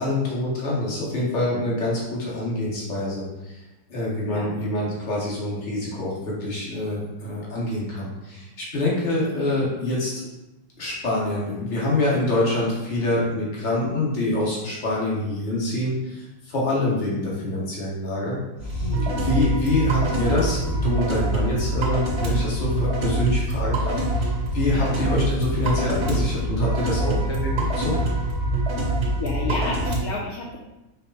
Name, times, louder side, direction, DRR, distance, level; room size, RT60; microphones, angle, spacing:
voice 1, 0.0-3.6 3.9-10.3 10.8-18.9 19.2-28.1, left 1 dB, 35° left, -5 dB, 0.9 m, -26 dB
sound 1, 18.6-30.0, right 1 dB, 55° right, 0.8 m, -24 dB
voice 2, 18.8-19.3 24.7-25.1 29.2-30.6, left 3 dB, 70° left, -3 dB, 0.9 m, -31 dB
4.6 x 2.0 x 3.9 m, 0.96 s
omnidirectional pair, 2.0 m